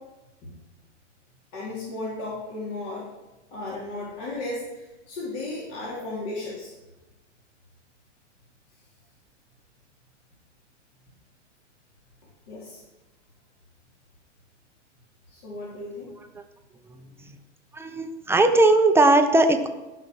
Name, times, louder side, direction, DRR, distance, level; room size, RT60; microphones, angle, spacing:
voice 1, 1.5-3.1 3.5-6.7 12.5-12.8 15.3-16.1, left 2 dB, 50° left, -6 dB, 3.9 m, -34 dB
voice 2, 17.7-19.7, right 2 dB, 5° right, 6 dB, 0.9 m, -19 dB
14.5 x 5.9 x 6.4 m, 1.1 s
hypercardioid pair, 120°, 36 cm